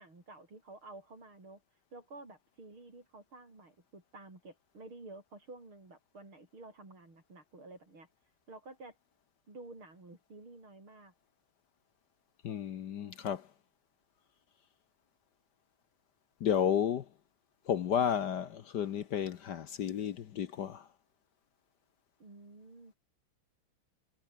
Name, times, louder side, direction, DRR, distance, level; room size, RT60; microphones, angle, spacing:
voice 1, 0.0-1.6 1.9-8.1 8.5-9.0 9.5-11.1 22.2-22.9, right 2 dB, 75° right, 8.4 m, -51 dB
voice 2, 12.4-13.5 16.4-17.1 17.7-20.9, left 8 dB, 60° left, 1.4 m, -32 dB
omnidirectional pair, 2.3 m